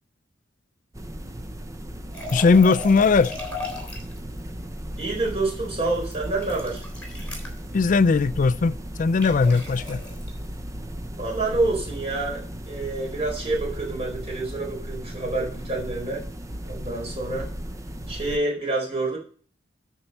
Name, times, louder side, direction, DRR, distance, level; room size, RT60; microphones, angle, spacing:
sound 1, 0.9-18.4, equal, 15° right, 0.6 m, -36 dB
sound 2, 2.1-4.2 6.0-7.6 9.2-10.3, left 2 dB, 10° left, 3.4 m, -36 dB
voice 1, 2.3-3.3 7.7-10.0, left 4 dB, 45° left, 0.4 m, -19 dB
voice 2, 5.0-6.8 11.2-16.2 16.6-17.5 18.1-19.2, right 2 dB, 35° right, 4.5 m, -27 dB
12.5 x 4.6 x 5.5 m
head